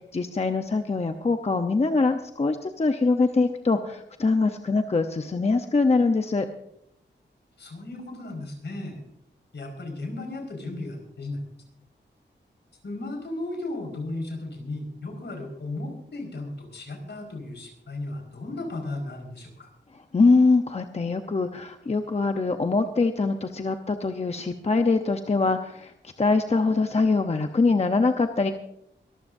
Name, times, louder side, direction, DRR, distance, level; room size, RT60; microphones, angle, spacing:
voice 1, 0.1-6.5 20.1-25.9 26.2-28.5, left 3 dB, 35° left, 6 dB, 0.8 m, -23 dB
voice 2, 7.6-9.0 9.5-11.4 12.8-19.7, left 2 dB, 65° left, 2 dB, 5.0 m, -35 dB
23.0 x 14.0 x 2.7 m, 0.76 s
wide cardioid pair, 115°, 19 cm